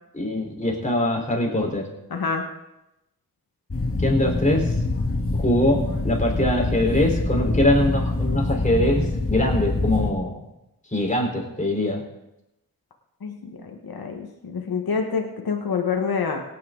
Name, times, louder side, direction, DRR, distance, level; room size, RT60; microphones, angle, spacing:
voice 1, 0.1-1.9 4.0-4.7 5.4-10.3 10.9-12.0, left 1 dB, 20° left, -1 dB, 4.2 m, -22 dB
voice 2, 2.1-2.4 13.2-13.6 13.8-16.4, left 5 dB, 75° left, 3 dB, 1.5 m, -27 dB
sound 1, 3.7-10.1, left 2 dB, 35° left, 2.0 m, -25 dB
17.5 x 9.4 x 3.9 m, 0.92 s
cardioid pair, 45°, 37 cm